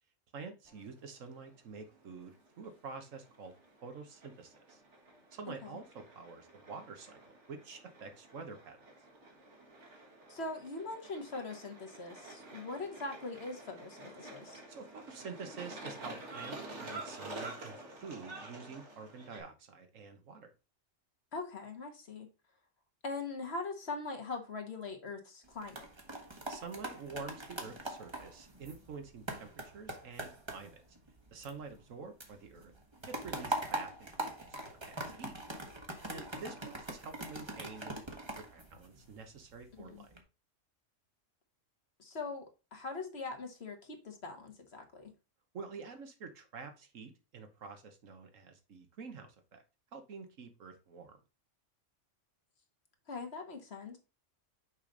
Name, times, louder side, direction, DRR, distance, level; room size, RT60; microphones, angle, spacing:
voice 1, 0.3-3.5 3.8-4.8 5.3-8.9 14.4-20.5 26.5-30.8 31.3-32.7 33.0-35.4 36.1-40.1 45.5-49.6 49.9-51.2, right 4 dB, 80° right, 1.5 m, -48 dB
sound 1, 0.6-19.4, right 2 dB, 65° right, 1.8 m, -50 dB
voice 2, 10.3-14.6 21.3-22.3 23.0-25.8 36.1-36.2 39.7-40.0 42.0-45.1 53.1-54.0, left 3 dB, 55° left, 1.6 m, -42 dB
sound 2, 25.4-31.9 32.2-39.4 39.9-40.2, right 1 dB, 20° right, 1.1 m, -42 dB
6.3 x 5.0 x 3.9 m
omnidirectional pair, 1.3 m